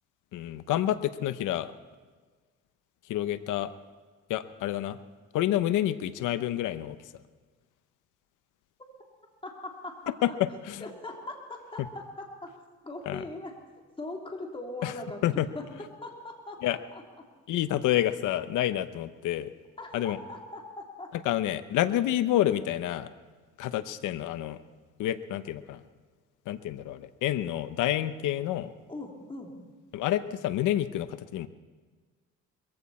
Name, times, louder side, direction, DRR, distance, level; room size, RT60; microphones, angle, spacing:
voice 1, 0.3-1.7 3.1-3.7 4.3-5.0 5.3-7.1 10.2-10.3 10.6-10.8 13.1-13.2 14.8-14.9 15.2-15.5 16.6-16.8 17.5-19.5 19.9-20.2 21.2-23.1 23.6-24.6 25.0-25.8 26.5-28.7 29.9-31.5, left 13 dB, 85° left, 13 dB, 0.8 m, -28 dB
voice 2, 9.4-10.0 10.8-12.5 12.8-13.5 14.0-15.2 15.5-16.8 19.8-21.1 28.9-29.6, left 2 dB, 15° left, 0 dB, 3.2 m, -40 dB
22.0 x 15.5 x 4.3 m, 1.4 s
cardioid pair, 90°, 30 cm